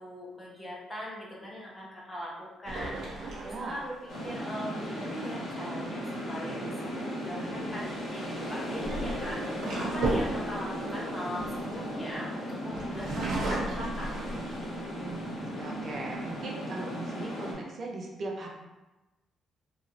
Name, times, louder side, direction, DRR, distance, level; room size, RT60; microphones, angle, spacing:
voice 1, 0.0-3.9 4.2-14.1, equal, 20° left, -5 dB, 1.1 m, -40 dB
sound 1, 2.7-4.3 7.2-7.5 8.5-12.2 12.7-14.9 15.4-15.5 15.9-16.4, right 2 dB, 75° right, 1.0 m, -34 dB
voice 2, 3.4-3.8 15.0-18.5, right 2 dB, 50° right, -2 dB, 0.6 m, -39 dB
sound 2, 4.1-17.5, equal, 80° left, 1.5 m, -36 dB
3.0 x 2.7 x 2.7 m, 1.1 s
cardioid pair, 90°, 0 cm